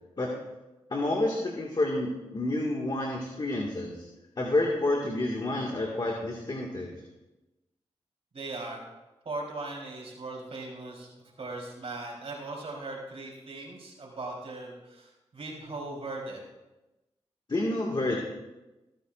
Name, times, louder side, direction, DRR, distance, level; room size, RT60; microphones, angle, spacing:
voice 1, 0.9-4.1 4.4-7.0 17.5-18.2, left 2 dB, 40° left, -2 dB, 1.8 m, -29 dB
voice 2, 8.3-8.8 9.3-11.1 11.4-16.4, right 2 dB, 60° right, -1 dB, 3.7 m, -39 dB
21.0 x 9.1 x 2.5 m, 1.0 s
cardioid pair, 55°, 11 cm